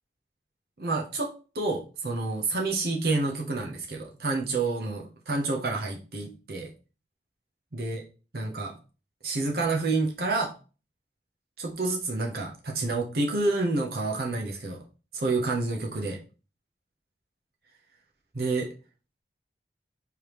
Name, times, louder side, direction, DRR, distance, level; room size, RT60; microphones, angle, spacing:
voice 1, 0.8-6.7 7.7-8.0 8.3-8.7 9.2-10.5 11.6-14.8 15.1-16.2 18.3-18.7, right 3 dB, 55° right, 0 dB, 0.8 m, -29 dB
4.8 x 3.5 x 3.0 m, 0.34 s
head